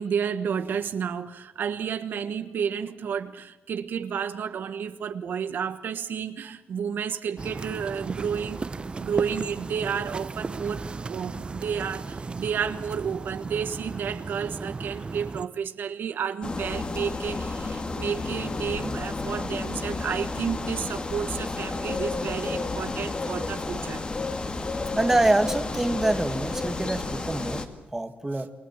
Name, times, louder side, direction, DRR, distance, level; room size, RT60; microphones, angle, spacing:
voice 1, 0.0-8.6 9.0-24.0, right 7 dB, 75° right, 1.4 m, -31 dB
sound 1, 7.4-15.5, right 4 dB, 30° right, 1.1 m, -35 dB
sound 2, 16.4-27.7, left 3 dB, 30° left, 2.2 m, -31 dB
voice 2, 24.9-28.5, right 2 dB, 15° right, 1.7 m, -25 dB
28.5 x 22.5 x 7.4 m
wide cardioid pair, 120°, 3 cm